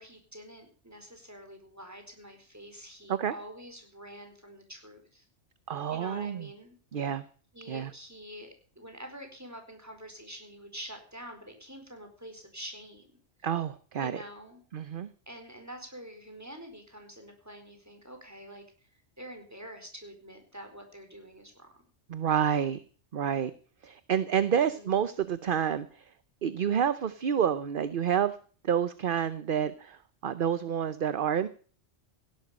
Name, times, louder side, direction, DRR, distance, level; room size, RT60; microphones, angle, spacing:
voice 1, 0.0-5.3 5.9-6.8 7.5-13.1 14.0-14.6 15.3-18.9 19.2-21.8 24.5-24.9, equal, 15° right, 5 dB, 4.5 m, -46 dB
voice 2, 5.7-6.5 6.9-7.3 7.7-7.9 13.4-14.2 14.7-15.1 22.1-22.8 23.1-23.5 23.8-26.1 26.4-28.4 28.6-31.5, right 8 dB, 50° right, 14 dB, 0.9 m, -29 dB
16.5 x 11.5 x 5.0 m, 0.43 s
omnidirectional pair, 1.2 m